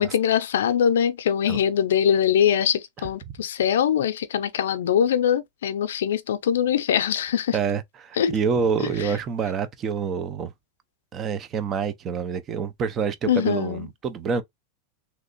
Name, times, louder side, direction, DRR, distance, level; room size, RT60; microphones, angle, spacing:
voice 1, 0.0-7.6 8.2-8.3 9.0-9.1 13.3-13.9, left 9 dB, 90° left, 0.5 m, -22 dB
voice 2, 7.5-10.5 11.1-14.4, right 6 dB, 30° right, 0.6 m, -27 dB
3.2 x 2.9 x 2.5 m
supercardioid pair, 130°, 0 cm